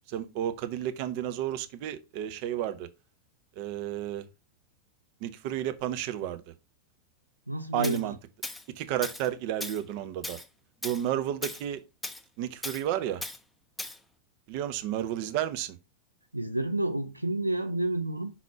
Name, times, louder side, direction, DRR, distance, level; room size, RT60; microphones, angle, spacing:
voice 1, 0.1-2.9 3.6-4.2 5.2-6.4 7.7-8.1 8.8-10.4 10.8-11.8 12.4-13.2 14.5-15.8, right 11 dB, 45° right, 0.8 m, -32 dB
voice 2, 7.5-8.2 16.3-18.3, right 1 dB, 85° right, 0.6 m, -30 dB
Tools, 7.8-8.0 8.4-8.6 9.0-9.3 9.6-9.8 10.2-10.5 10.8-11.0 11.4-11.6 12.0-12.2 12.6-12.8 13.2-13.4 13.8-14.0, left 2 dB, 5° left, 0.6 m, -37 dB
5.7 x 4.1 x 4.6 m
figure-of-eight pair, 90°, 0 cm